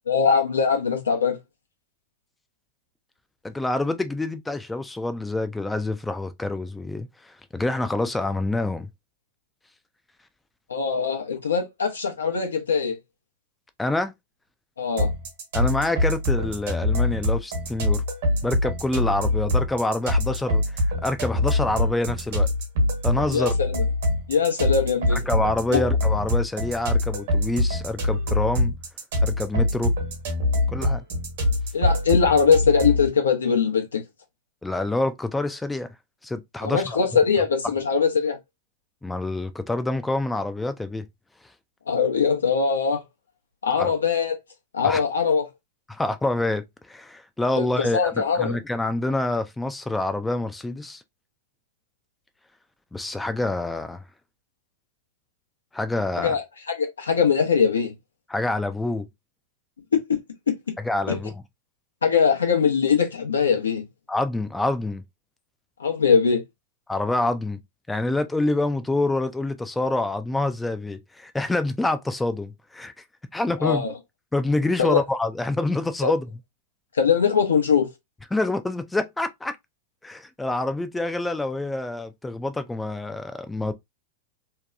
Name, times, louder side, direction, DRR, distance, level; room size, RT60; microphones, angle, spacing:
voice 1, 0.1-1.4 10.7-13.0 14.8-15.1 23.3-23.8 24.3-25.2 25.7-25.9 31.7-34.0 36.6-38.4 41.9-43.0 43.6-44.4 44.7-45.5 47.6-48.6 56.2-57.9 61.1-61.2 62.0-63.8 65.8-66.4 73.6-73.9 74.8-75.0 76.0-76.1 76.9-77.9, left 6 dB, 85° left, 0.8 m, -21 dB
voice 2, 3.4-8.9 13.8-14.1 15.5-18.0 18.4-22.5 23.0-23.5 25.1-28.8 29.2-29.9 30.7-31.0 34.6-35.9 36.2-37.0 39.0-41.1 43.8-43.9 44.8-45.0 45.9-51.0 52.9-54.0 55.7-56.4 58.3-59.1 60.8-61.3 64.1-65.0 66.9-67.6 67.9-73.0 73.3-73.8 74.3-76.3 78.3-79.6 80.0-83.7, left 2 dB, 10° left, 0.3 m, -26 dB
sound 1, 15.0-33.1, left 1 dB, 65° right, 1.0 m, -24 dB
2.8 x 2.2 x 2.3 m
hypercardioid pair, 100°, 0 cm